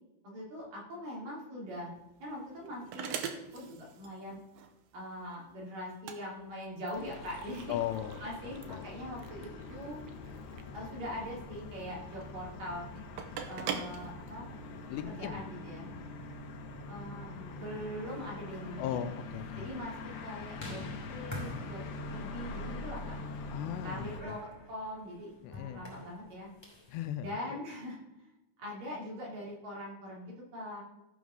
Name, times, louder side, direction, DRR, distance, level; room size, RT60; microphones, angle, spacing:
voice 1, 0.2-1.9 2.2-3.2 3.5-4.4 4.9-7.8 8.2-10.0 10.7-12.8 13.5-14.5 15.1-15.9 16.9-19.1 19.6-20.8 21.1-23.2 23.8-26.5 27.2-28.3 28.6-30.8, equal, 55° right, -3 dB, 4.2 m, -42 dB
sound 1, 1.7-15.0, right 7 dB, 75° right, 2.2 m, -44 dB
sound 2, 6.9-24.2, left 3 dB, 65° left, 2.1 m, -44 dB
voice 2, 7.7-8.3 8.7-8.9 14.9-15.4 18.8-19.7 23.5-24.4 25.4-25.9 26.9-27.6, left 11 dB, 85° left, 9 dB, 2.7 m, -37 dB
sound 3, 18.1-27.0, left 1 dB, 10° left, 2.0 m, -48 dB
14.5 x 5.3 x 6.3 m, 0.99 s
omnidirectional pair, 5.0 m